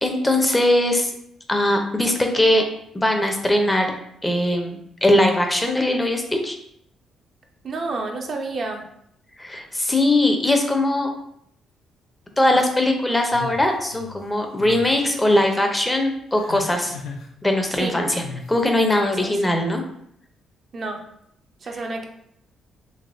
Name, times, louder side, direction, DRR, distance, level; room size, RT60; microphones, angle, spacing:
voice 1, 0.0-1.1 1.5-2.6 2.9-3.9 4.2-6.6 9.4-11.1 12.4-16.9 17.4-18.2 18.5-19.8, left 1 dB, 15° left, 3 dB, 0.5 m, -20 dB
voice 2, 7.6-8.8 17.8-17.9 19.2-19.4 20.7-21.0 21.6-22.0, right 3 dB, 50° right, 2 dB, 0.5 m, -29 dB
sound 1, 13.3-14.2 14.6-14.8 15.2-15.7 16.3-17.3 18.2-18.6, left 4 dB, 90° left, 0.5 m, -37 dB
3.2 x 3.0 x 2.5 m, 0.72 s
cardioid pair, 90°, 0 cm